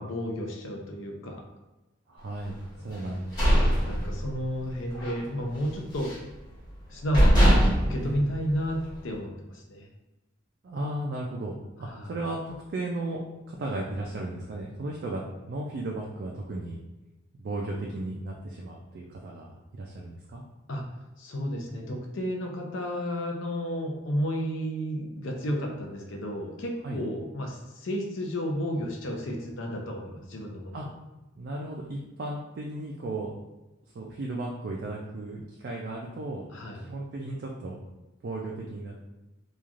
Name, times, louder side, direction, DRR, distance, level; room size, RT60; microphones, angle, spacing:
voice 1, 0.0-1.4 2.9-3.4 3.7-6.1 6.9-7.5 7.8-9.9 11.8-12.1 20.7-20.8 21.2-30.7 36.5-36.8, equal, 65° left, 1 dB, 0.5 m, -32 dB
voice 2, 2.1-4.2 8.0-8.2 10.6-15.2 15.5-16.8 17.4-20.4 26.8-27.0 30.7-30.9 31.4-33.3 33.9-36.4 36.8-37.8 38.2-39.0, right 2 dB, 55° right, -2 dB, 0.3 m, -35 dB
sound 1, 3.0-4.6 4.9-5.2 5.5-6.3 6.8-6.9 7.1-9.0, equal, 20° left, 1.1 m, -22 dB
3.1 x 2.3 x 2.4 m, 1.1 s
head